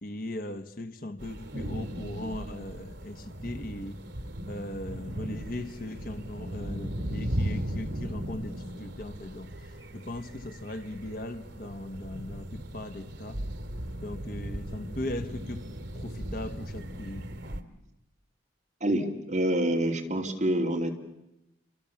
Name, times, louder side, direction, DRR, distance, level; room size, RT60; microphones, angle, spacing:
voice 1, 0.0-4.0 4.5-13.4 14.0-15.7 15.9-17.3, left 1 dB, 45° left, 1.2 m, -39 dB
sound 1, 1.2-17.6, equal, 75° right, 2.2 m, -37 dB
voice 2, 18.8-20.9, right 1 dB, 40° right, 2.9 m, -27 dB
30.0 x 24.5 x 7.1 m
head